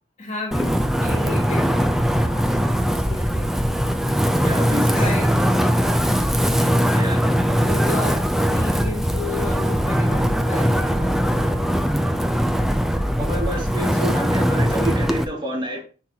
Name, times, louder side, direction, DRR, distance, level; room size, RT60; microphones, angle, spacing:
voice 1, 0.2-3.6 4.6-6.2 7.6-11.7, left 2 dB, 35° left, 2.2 m, -34 dB
Wind, 0.5-15.2, equal, ahead, 0.5 m, -20 dB
voice 2, 4.4-5.0 6.9-7.3 13.2-15.8, equal, 25° right, 2.5 m, -28 dB
10.0 x 4.6 x 2.8 m
head